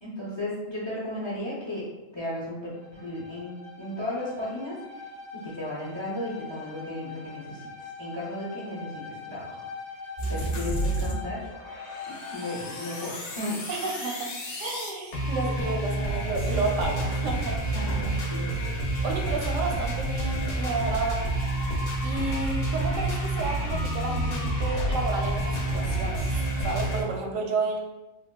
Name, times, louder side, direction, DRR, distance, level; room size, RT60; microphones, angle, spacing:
voice 1, 0.0-1.9 2.1-5.1 5.3-7.7 8.0-9.7 10.3-11.5 12.1-13.6 17.7-18.7, left 1 dB, 30° left, -7 dB, 0.5 m, -35 dB
Bowed string instrument, 2.7-13.2, left 4 dB, 55° right, 0.6 m, -42 dB
sound 1, 10.2-11.2 11.5-27.0, right 1 dB, 55° left, 0.8 m, -29 dB
voice 2, 13.7-14.3 14.6-17.6 19.0-21.3 22.0-26.4 26.6-27.8, right 3 dB, 90° right, 1 dB, 1.0 m, -31 dB
3.5 x 2.5 x 2.2 m, 1.0 s
omnidirectional pair, 1.3 m